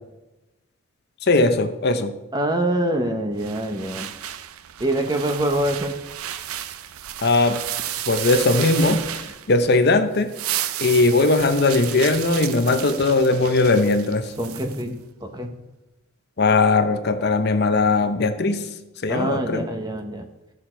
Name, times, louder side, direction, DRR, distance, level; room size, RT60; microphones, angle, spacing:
voice 1, 1.2-2.2 7.2-7.6 8.1-9.0 9.5-10.3 10.8-14.3 16.4-18.7 19.0-19.7, left 3 dB, 50° left, 9 dB, 0.7 m, -19 dB
voice 2, 2.3-4.1 4.8-5.9 14.4-15.5 19.1-20.3, right 1 dB, 20° right, 5 dB, 0.9 m, -25 dB
sound 1, 3.4-9.8 10.1-14.8, right 11 dB, 90° right, 0.5 m, -32 dB
13.5 x 6.4 x 4.4 m, 1.0 s
head